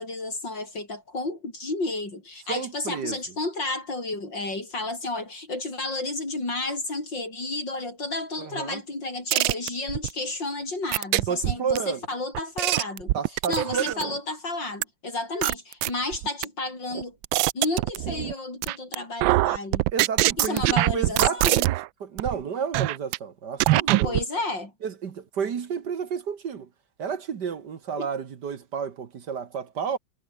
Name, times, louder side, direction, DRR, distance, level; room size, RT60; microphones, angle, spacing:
voice 1, 0.0-13.1 13.5-17.2 17.5-19.9 20.4-21.6 24.0-24.7 27.9-28.1, left 2 dB, 65° left, 7.6 m, -31 dB
voice 2, 2.5-3.2 8.4-8.8 11.3-12.1 13.1-14.1 19.9-21.7 22.0-24.2 24.8-26.7 27.0-30.0, right 7 dB, 60° right, 2.0 m, -31 dB
sound 1, 9.3-10.1 10.9-11.8 12.3-14.2 14.8-14.9 15.4-16.4 16.9-18.3 18.6-19.0 19.2-21.9 22.2-22.3 22.7-23.2 23.6-24.2, right 18 dB, 90° right, 1.3 m, -23 dB
omnidirectional pair, 2.1 m